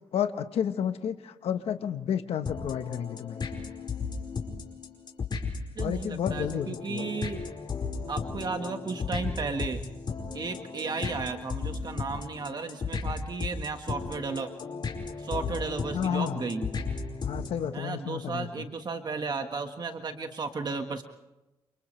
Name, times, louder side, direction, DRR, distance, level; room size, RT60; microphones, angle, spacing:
voice 1, 0.1-3.4 5.8-7.1 15.9-16.4 17.2-18.6, left 9 dB, 85° left, 8 dB, 1.3 m, -31 dB
sound 1, 2.5-17.7, left 5 dB, 50° left, 5.1 m, -35 dB
voice 2, 5.7-7.4 8.1-9.8 10.3-14.5 15.2-16.7 17.7-21.0, right 4 dB, 45° right, 5 dB, 1.6 m, -34 dB
29.5 x 28.5 x 3.4 m, 1.0 s
cardioid pair, 105°, 10 cm